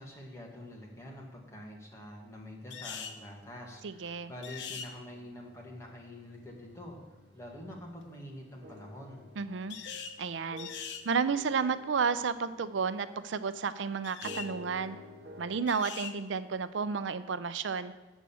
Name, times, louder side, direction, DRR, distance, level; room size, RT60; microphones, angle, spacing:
voice 1, 0.0-7.0 7.3-9.2, left 1 dB, 15° left, -2 dB, 1.7 m, -46 dB
sound 1, 2.7-3.2 4.4-4.9 9.7-10.2 10.6-11.0 14.0-14.5 15.7-16.2, left 7 dB, 70° left, 0.8 m, -41 dB
sound 2, 3.2-15.6, left 1 dB, 60° right, 1.0 m, -53 dB
voice 2, 3.8-4.3 9.4-9.8 10.2-10.7 11.1-15.0 15.4-17.9, right 5 dB, 85° right, 13 dB, 0.5 m, -32 dB
8.1 x 6.2 x 7.0 m, 1.2 s
head